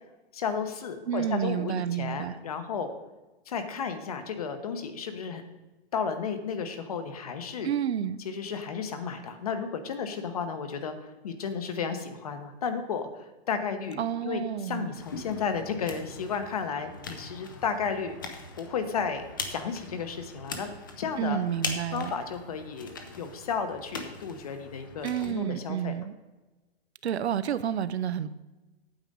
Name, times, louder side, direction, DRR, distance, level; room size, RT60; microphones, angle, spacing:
voice 1, 0.3-2.9 3.5-5.4 5.9-7.7 8.2-18.2 18.5-20.7 21.0-21.4 21.9-25.9, left 6 dB, 35° left, 8 dB, 0.9 m, -33 dB
voice 2, 1.1-2.4 7.6-8.2 14.0-14.9 21.2-22.1 25.0-26.1 27.0-28.3, right 9 dB, 90° right, 14 dB, 0.8 m, -30 dB
sound 1, 14.9-25.3, left 4 dB, 20° left, 0.5 m, -41 dB
8.9 x 7.6 x 5.4 m, 1.1 s
hypercardioid pair, 180°, 32 cm